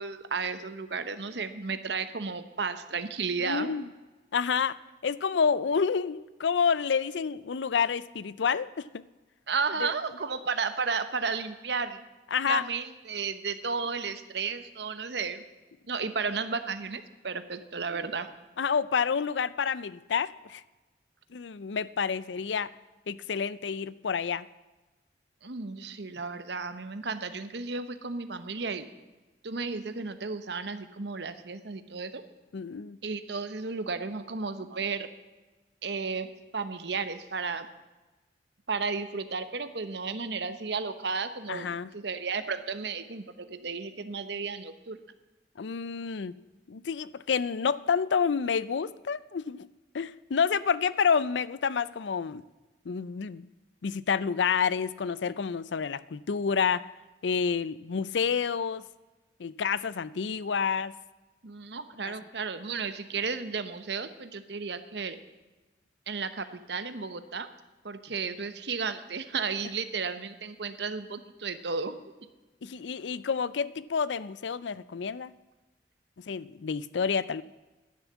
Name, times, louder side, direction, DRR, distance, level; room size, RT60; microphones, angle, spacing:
voice 1, 0.0-3.7 9.5-12.0 12.5-15.4 15.9-18.3 25.4-28.9 29.4-32.2 33.0-35.1 35.8-37.7 38.7-45.0 61.4-65.2 66.1-67.5 67.8-72.0, right 5 dB, 65° right, 11 dB, 1.0 m, -33 dB
voice 2, 3.4-3.9 4.3-4.8 5.0-9.0 9.8-9.9 12.3-12.6 18.6-20.6 21.3-22.7 23.1-24.5 32.5-33.0 41.5-41.9 45.6-46.3 46.7-49.7 49.9-52.4 52.9-53.5 53.8-56.9 57.2-58.8 59.4-60.9 62.0-62.1 72.6-75.3 76.3-77.4, left 6 dB, 75° left, 18 dB, 0.5 m, -29 dB
10.5 x 10.5 x 7.3 m, 1.1 s
head